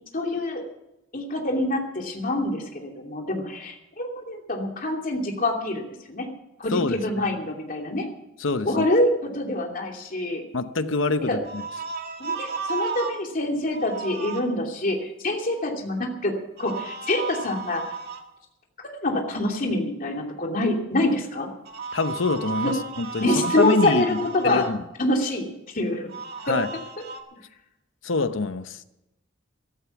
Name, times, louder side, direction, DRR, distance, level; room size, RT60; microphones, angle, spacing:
voice 1, 0.1-0.6 1.1-5.8 6.1-6.3 6.6-8.1 8.6-10.4 11.2-11.4 12.2-16.3 16.6-17.8 19.0-21.5 23.2-24.7 25.0-26.1 26.5-26.6, left 1 dB, 45° left, 2.8 m, -25 dB
voice 2, 6.7-7.2 8.4-8.9 10.5-11.6 21.9-24.2 24.4-24.8 26.5-26.7 28.0-28.8, left 3 dB, 90° left, 0.9 m, -26 dB
sound 1, 11.4-13.2 13.7-14.4 16.6-18.2 21.6-24.7 26.1-27.2, right 5 dB, 55° right, 1.9 m, -33 dB
14.5 x 13.5 x 5.9 m
head